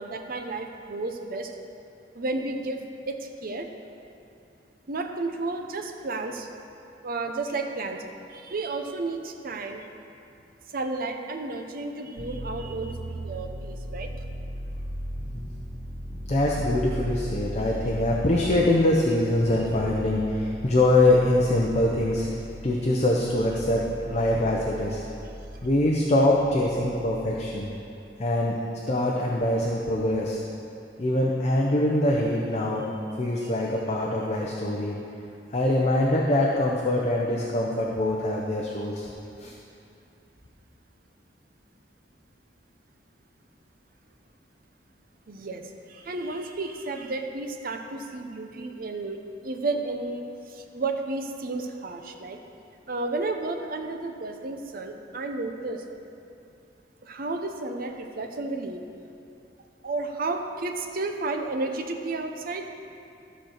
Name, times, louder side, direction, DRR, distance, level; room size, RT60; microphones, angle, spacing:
voice 1, 0.0-1.5 2.1-2.8 3.1-3.7 4.9-6.5 7.0-8.0 8.3-9.9 10.7-14.1 33.4-33.5 39.4-39.5 45.3-52.4 52.9-55.8 57.0-58.8 59.8-62.7, right 3 dB, 55° right, 4 dB, 0.7 m, -32 dB
sound 1, 12.2-27.8, equal, ahead, 0.8 m, -38 dB
voice 2, 16.3-22.3 22.6-25.0 25.6-27.7 28.2-28.6 28.9-30.4 31.0-32.9 33.2-35.0 35.5-39.1 39.4-39.5, left 1 dB, 40° left, -2 dB, 0.7 m, -23 dB
13.0 x 4.4 x 6.5 m, 2.6 s
head